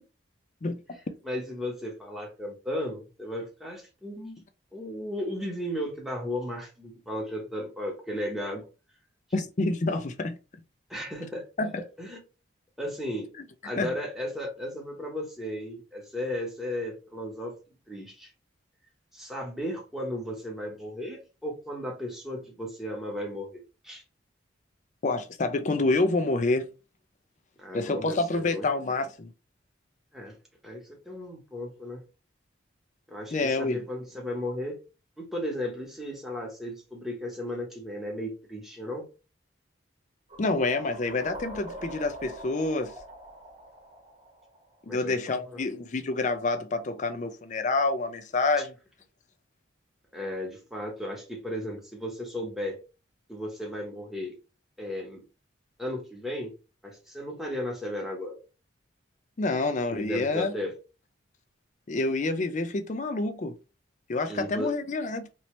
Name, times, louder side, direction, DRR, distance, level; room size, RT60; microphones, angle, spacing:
voice 1, 0.6-1.0 9.3-10.4 11.6-11.7 13.8-13.9 25.0-26.7 27.7-29.3 33.3-33.8 40.4-42.9 44.9-48.7 59.4-60.5 61.9-63.6 64.1-65.3, left 3 dB, 40° left, 0.4 m, -27 dB
voice 2, 1.2-4.4 4.7-8.6 10.9-11.5 12.0-12.2 12.8-13.3 13.6-17.5 17.9-18.3 19.1-24.0 27.6-28.7 30.1-30.3 30.6-32.0 33.1-34.8 35.2-39.0 44.9-45.6 48.6-48.7 50.1-52.8 53.3-54.3 54.8-55.2 55.8-56.5 56.8-58.4 59.9-60.7 64.3-64.7, left 1 dB, ahead, 0.9 m, -35 dB
sound 1, 40.3-45.2, right 1 dB, 30° right, 1.1 m, -44 dB
3.0 x 2.7 x 3.0 m
head